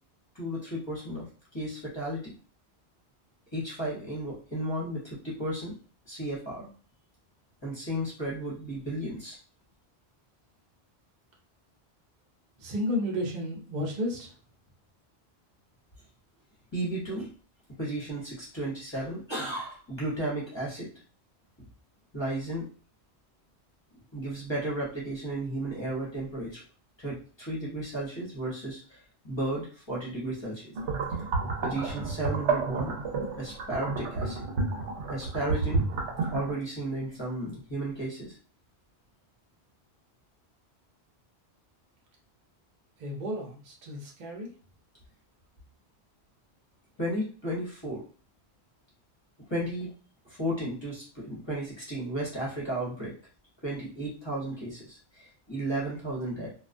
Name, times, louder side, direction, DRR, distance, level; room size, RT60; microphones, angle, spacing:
voice 1, 0.3-1.3 1.5-2.3 3.5-5.7 6.1-6.7 7.6-9.4 16.7-17.3 17.8-20.9 22.1-22.6 24.1-26.6 27.0-29.0 29.2-30.7 31.6-32.9 33.4-34.4 35.1-35.9 36.3-38.4 47.0-48.0 49.5-49.9 50.2-53.1 53.6-56.5, right 1 dB, 25° left, -6 dB, 0.8 m, -34 dB
voice 2, 12.6-14.3 43.0-44.5, left 1 dB, 45° right, -1 dB, 0.7 m, -32 dB
sound 1, 30.7-36.5, right 4 dB, 80° right, 0.9 m, -30 dB
2.3 x 2.2 x 2.5 m, 0.39 s
omnidirectional pair, 1.1 m